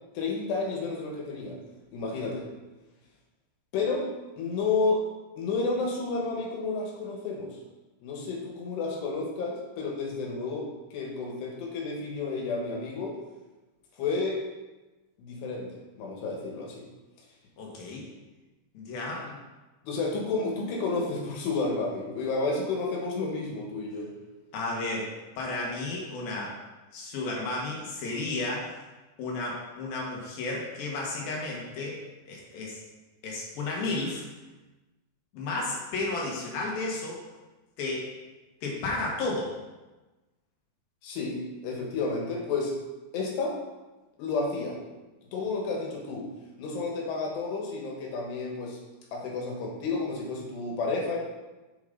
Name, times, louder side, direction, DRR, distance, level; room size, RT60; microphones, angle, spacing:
voice 1, 0.2-1.6 1.9-2.5 3.7-4.1 4.4-5.1 5.4-7.6 8.0-13.2 14.0-14.4 15.2-15.7 16.0-16.9 19.2-19.3 19.8-24.1 41.0-42.8 43.1-43.6 44.2-44.8 45.3-46.3 46.6-48.8 49.1-51.2, left 3 dB, 85° left, -1 dB, 3.5 m, -31 dB
voice 2, 17.6-18.0 18.7-19.3 24.5-25.1 25.4-26.5 26.9-28.8 29.2-32.8 33.2-34.2 35.3-37.2 37.8-38.1 38.6-39.5, left 2 dB, 65° left, -2 dB, 3.0 m, -33 dB
7.6 x 7.0 x 3.9 m, 1.1 s
omnidirectional pair, 4.8 m